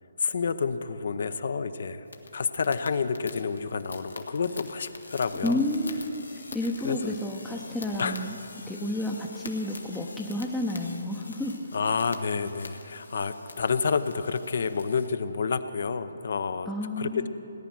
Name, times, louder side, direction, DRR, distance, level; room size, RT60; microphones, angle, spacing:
voice 1, 0.2-2.0 2.3-5.6 6.8-7.1 8.0-8.2 11.7-16.7 17.0-17.3, left 5 dB, 60° left, 12 dB, 0.7 m, -29 dB
sound 1, 2.1-15.1, left 3 dB, 85° left, 1.5 m, -45 dB
voice 2, 5.4-8.3 8.7-11.7 16.7-17.3, left 1 dB, 5° left, -1 dB, 0.7 m, -31 dB
18.0 x 10.0 x 6.1 m, 2.8 s
figure-of-eight pair, 150°, 0 cm